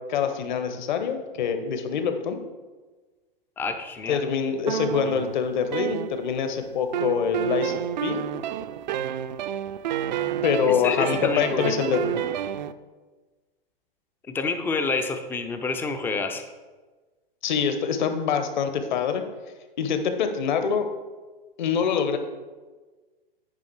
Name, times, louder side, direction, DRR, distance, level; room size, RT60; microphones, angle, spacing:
voice 1, 0.0-2.4 4.1-8.2 10.4-12.2 17.4-19.2 19.8-20.9 21.6-22.2, left 7 dB, 50° left, 8 dB, 1.1 m, -25 dB
voice 2, 3.6-4.2 10.6-11.8 14.3-16.4, left 4 dB, 5° left, 8 dB, 0.4 m, -28 dB
sound 1, 4.7-6.5 6.9-12.7, right 11 dB, 50° right, 0.5 m, -30 dB
9.8 x 5.2 x 4.6 m, 1.3 s
figure-of-eight pair, 105°, 29 cm